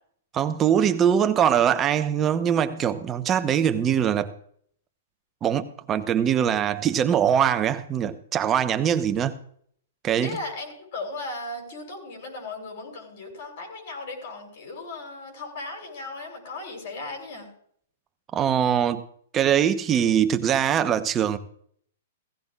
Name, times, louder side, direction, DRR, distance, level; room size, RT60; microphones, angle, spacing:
voice 1, 0.3-4.3 5.4-9.4 10.0-10.4 18.3-19.0 19.3-21.4, right 9 dB, 25° right, 1.0 m, -22 dB
voice 2, 10.2-17.5, left 2 dB, 55° left, 6.2 m, -36 dB
16.5 x 16.0 x 2.5 m
hypercardioid pair, 120°, 0 cm